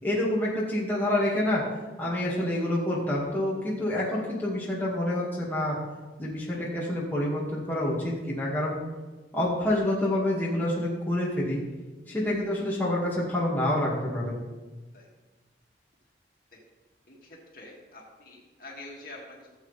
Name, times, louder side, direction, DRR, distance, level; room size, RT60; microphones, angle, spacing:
voice 1, 0.0-1.6 2.0-5.8 6.2-8.8 9.3-11.6 12.1-14.4, left 1 dB, 10° left, -6 dB, 2.3 m, -27 dB
voice 2, 17.1-19.5, left 2 dB, 50° left, -2 dB, 2.5 m, -46 dB
17.0 x 7.9 x 3.5 m, 1.2 s
head